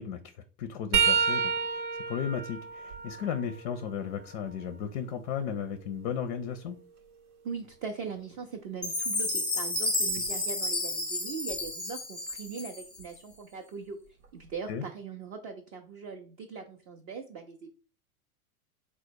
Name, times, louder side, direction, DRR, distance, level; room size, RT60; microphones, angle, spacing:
voice 1, 0.0-6.8 14.7-14.8, left 7 dB, 40° left, 0.5 m, -35 dB
sound 1, 0.9-4.7 5.2-7.2 10.1-10.3 11.5-11.7 13.0-13.1, right 6 dB, 80° right, 0.9 m, -32 dB
voice 2, 7.4-14.0 14.3-17.7, right 5 dB, 25° right, 0.4 m, -40 dB
Chime, 8.8-13.0, left 2 dB, ahead, 0.8 m, -31 dB
4.0 x 2.1 x 4.5 m
figure-of-eight pair, 95°, 43 cm